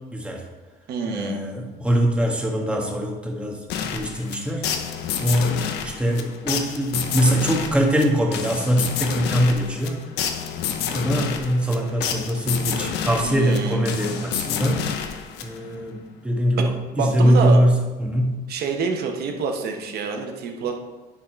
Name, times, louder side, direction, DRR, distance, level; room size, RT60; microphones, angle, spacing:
voice 1, 0.1-0.4 1.0-3.6 3.9-4.6 5.2-10.0 10.6-14.8 15.4-18.4, equal, 5° right, 0 dB, 1.5 m, -22 dB
voice 2, 0.9-1.4 13.2-13.8 16.9-17.6 18.5-20.7, right 5 dB, 70° right, 3 dB, 1.2 m, -27 dB
sound 1, 3.7-15.8, left 8 dB, 85° left, 0.8 m, -29 dB
10.0 x 4.1 x 4.4 m, 1.2 s
cardioid pair, 110°, 17 cm